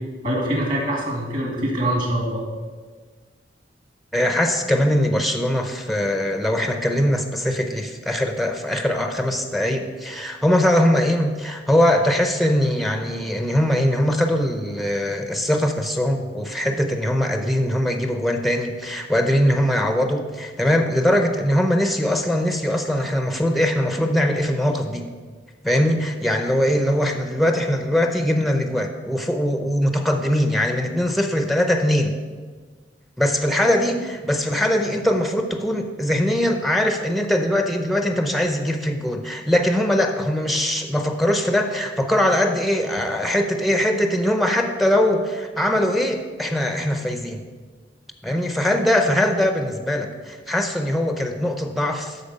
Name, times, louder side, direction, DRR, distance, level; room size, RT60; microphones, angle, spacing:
voice 1, 0.2-2.4, right 1 dB, 50° right, -2 dB, 2.3 m, -24 dB
voice 2, 4.1-25.1 25.6-32.1 33.2-47.4 48.2-52.2, left 1 dB, ahead, 5 dB, 0.5 m, -21 dB
12.5 x 4.2 x 5.3 m, 1.5 s
head